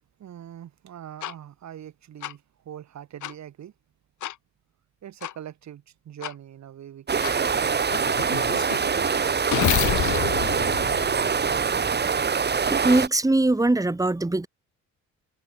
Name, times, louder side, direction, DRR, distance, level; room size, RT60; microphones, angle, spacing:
voice 1, 0.2-3.7 5.0-10.9, right 10 dB, 65° right, 3.9 m, -43 dB
sound 1, 1.2-1.3 2.2-2.3 3.2-3.3 4.2-4.3 5.2-5.3 6.2-6.3 7.2-7.3 7.9-11.8, left 13 dB, 75° left, 3.4 m, -29 dB
sound 2, 7.1-13.1, right 6 dB, 35° right, 2.0 m, -24 dB
voice 2, 12.7-14.5, right 2 dB, 10° right, 2.2 m, -21 dB
cardioid pair, 90°, 30 cm